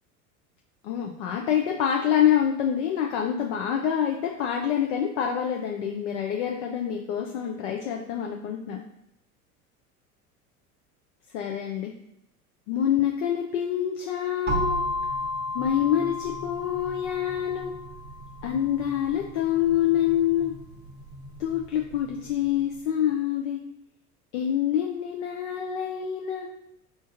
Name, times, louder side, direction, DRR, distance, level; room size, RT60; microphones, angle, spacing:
voice 1, 0.8-8.8 11.3-11.9 12.7-14.8 15.5-17.7 18.4-20.5 21.4-23.6 24.3-26.5, left 10 dB, 55° left, 1 dB, 0.5 m, -26 dB
sound 1, 14.5-22.3, left 1 dB, 25° right, 0.7 m, -33 dB
5.0 x 2.5 x 2.5 m, 0.80 s
figure-of-eight pair, 75°, 45 cm